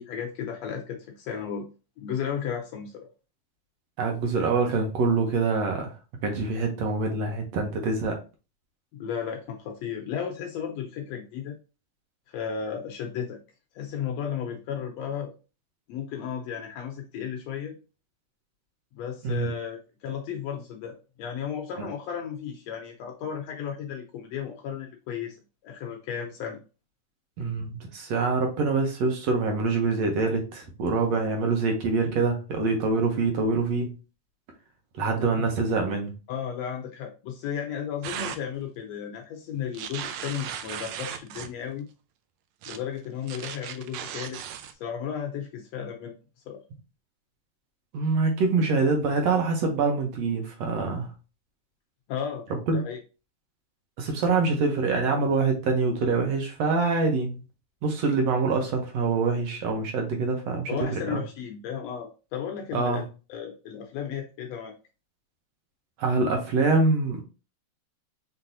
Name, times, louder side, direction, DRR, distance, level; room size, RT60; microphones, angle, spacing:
voice 1, 0.0-1.6 2.0-3.1 8.9-11.5 12.3-13.4 13.7-15.3 15.9-17.8 18.9-25.4 25.6-26.6 35.2-35.5 36.3-41.9 42.7-44.4 44.8-46.1 46.5-46.6 52.1-53.0 60.7-63.0 63.3-64.7, left 8 dB, 85° left, 3 dB, 1.5 m, -34 dB
voice 2, 4.0-6.0 6.2-8.2 19.2-19.5 21.8-21.9 27.4-33.9 34.9-36.1 47.9-51.1 52.7-52.8 54.0-57.4 57.8-60.7 61.1-61.2 62.7-63.0 66.0-67.2, right 4 dB, 70° right, 3 dB, 1.6 m, -25 dB
sound 1, 38.0-38.4 39.7-41.5 42.6-42.8 43.3-44.7, right 9 dB, 85° right, 1.6 m, -36 dB
5.8 x 3.3 x 2.7 m, 0.32 s
omnidirectional pair, 3.8 m